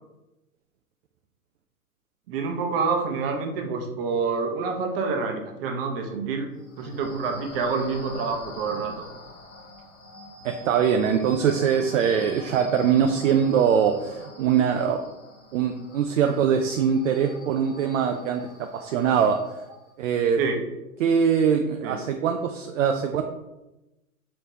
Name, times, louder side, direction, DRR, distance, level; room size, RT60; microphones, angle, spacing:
voice 1, 2.3-6.5 6.8-9.0 20.4-20.6 21.8-22.0, right 4 dB, 40° right, 3 dB, 0.8 m, -27 dB
sound 1, 6.5-20.0, left 2 dB, 55° left, 1.4 m, -44 dB
voice 2, 10.4-15.0 15.5-19.6 20.0-20.4 21.0-23.2, right 7 dB, 60° right, 5 dB, 0.5 m, -22 dB
4.9 x 3.3 x 2.7 m, 0.98 s
hypercardioid pair, 120°, 44 cm